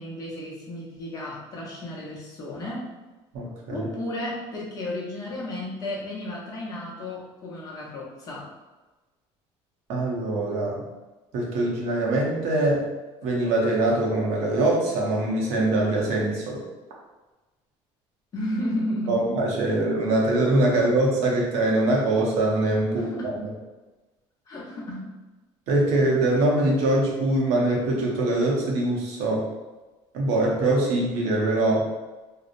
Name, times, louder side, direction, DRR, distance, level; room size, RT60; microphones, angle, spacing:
voice 1, 0.0-2.9 3.7-8.5 18.3-19.3 22.8-23.3 24.5-25.1, left 1 dB, 35° left, -5 dB, 0.7 m, -33 dB
voice 2, 3.3-3.9 9.9-10.8 11.3-12.8 13.2-16.6 19.1-23.1 23.4-23.5 25.7-29.4 30.1-31.8, right 2 dB, 70° right, -3 dB, 0.7 m, -23 dB
2.8 x 2.0 x 2.4 m, 1.2 s
cardioid pair, 140°, 11 cm